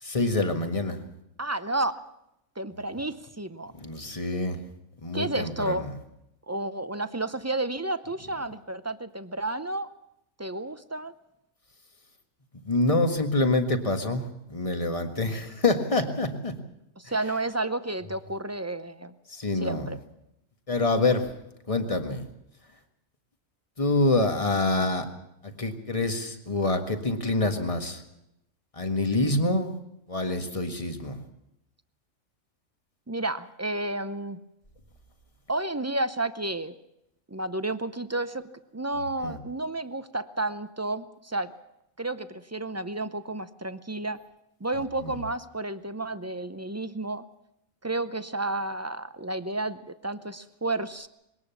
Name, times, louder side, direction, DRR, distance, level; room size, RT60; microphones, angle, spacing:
voice 1, 0.0-1.0 3.8-4.6 5.0-5.9 12.7-16.5 19.3-19.9 20.7-21.3 21.7-22.3 23.8-25.1 25.4-28.0 28.8-29.8 30.1-31.2 39.2-39.4 45.0-45.2, left 2 dB, 25° left, 6 dB, 1.7 m, -26 dB
voice 2, 1.4-2.0 2.6-3.7 5.1-5.9 6.5-9.9 10.4-11.1 17.0-19.1 19.6-20.0 33.1-34.4 35.5-36.8 37.3-38.4 38.7-41.5 42.0-44.2 44.6-47.2 47.8-51.1, right 2 dB, 20° right, 13 dB, 0.4 m, -31 dB
21.5 x 18.0 x 7.1 m, 0.83 s
omnidirectional pair, 1.4 m